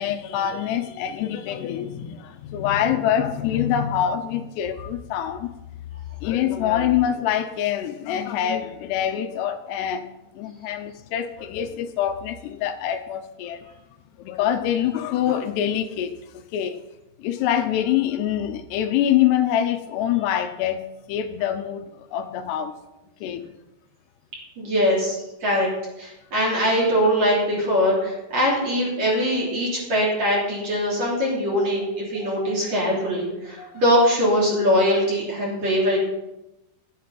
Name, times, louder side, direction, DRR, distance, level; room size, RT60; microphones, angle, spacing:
voice 1, 0.0-5.5 6.2-10.0 10.4-13.7 14.2-16.8 17.2-22.7 23.2-23.5 32.2-32.5 32.9-33.0 33.6-33.8, left 10 dB, 80° left, 2.6 m, -25 dB
voice 2, 24.6-25.7 26.0-36.0, equal, 40° right, 3.9 m, -22 dB
12.5 x 8.5 x 5.9 m
omnidirectional pair, 5.3 m